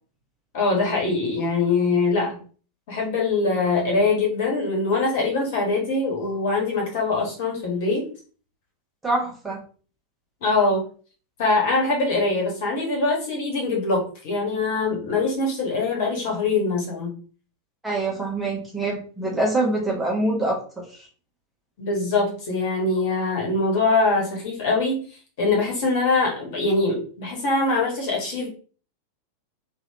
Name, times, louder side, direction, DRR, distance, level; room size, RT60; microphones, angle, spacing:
voice 1, 0.5-2.4 2.9-8.0 10.4-10.8 11.4-17.1 21.8-25.0 25.4-28.5, left 3 dB, 50° left, 0 dB, 1.4 m, -23 dB
voice 2, 9.0-9.6 17.8-21.1, right 2 dB, 10° right, -3 dB, 1.1 m, -25 dB
3.1 x 2.6 x 2.9 m, 0.40 s
figure-of-eight pair, 90°, 0 cm